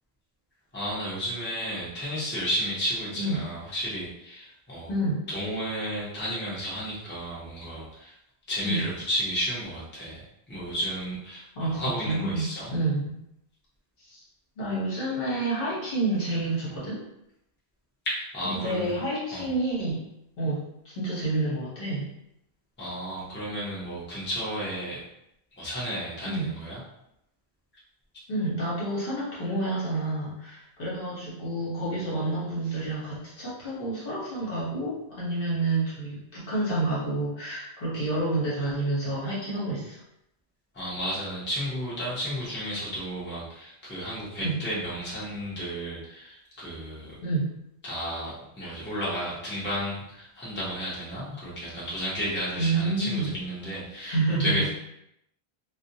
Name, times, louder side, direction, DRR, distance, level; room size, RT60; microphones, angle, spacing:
voice 1, 0.7-4.9 5.3-8.1 8.5-12.7 18.0-19.0 19.3-19.5 22.8-25.0 25.6-26.8 40.7-47.2 47.8-54.7, equal, 10° left, -8 dB, 0.7 m, -33 dB
voice 2, 4.9-5.2 8.6-8.8 11.6-13.1 14.0-14.2 14.6-17.0 18.4-20.0 20.4-22.1 26.2-26.5 28.3-40.0 44.4-44.6 47.2-47.5 48.6-48.7 52.6-53.3 54.0-54.7, right 2 dB, 60° left, -7 dB, 1.0 m, -29 dB
2.5 x 2.1 x 2.6 m, 0.81 s
omnidirectional pair, 1.1 m